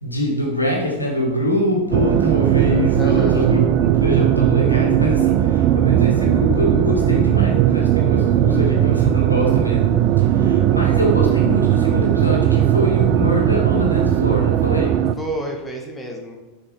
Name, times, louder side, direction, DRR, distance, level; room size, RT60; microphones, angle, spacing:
voice 1, 0.0-15.0, left 1 dB, 85° left, -1 dB, 1.6 m, -24 dB
sound 1, 1.9-15.1, right 11 dB, 40° right, 0.4 m, -17 dB
voice 2, 2.9-3.5 15.2-16.4, right 1 dB, 5° left, 0 dB, 1.3 m, -29 dB
7.0 x 4.9 x 4.5 m, 1.1 s
figure-of-eight pair, 90°, 0 cm